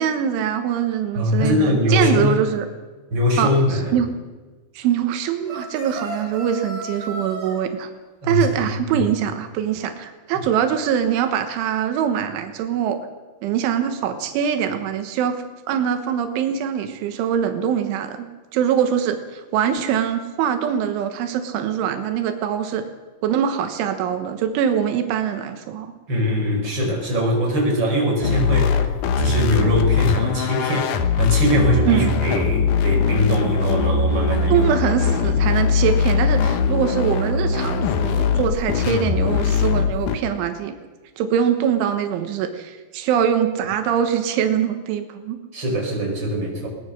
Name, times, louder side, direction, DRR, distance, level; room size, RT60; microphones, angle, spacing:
voice 1, 0.0-2.7 3.4-4.1 4.8-7.9 8.2-13.0 13.4-18.3 18.5-22.8 23.2-25.9 31.9-32.2 34.5-40.7 41.2-45.4, right 8 dB, 90° right, 7 dB, 3.8 m, -23 dB
voice 2, 1.2-2.4 3.1-4.0 8.2-8.7 8.9-9.0 26.1-34.7 35.2-35.3 45.5-46.7, left 1 dB, 25° right, 0 dB, 5.4 m, -22 dB
sound 1, 5.5-7.6, right 1 dB, 40° right, 6.4 m, -33 dB
sound 2, 28.2-40.2, left 5 dB, 75° left, 1.8 m, -21 dB
21.5 x 19.0 x 6.5 m, 1.3 s
omnidirectional pair, 5.3 m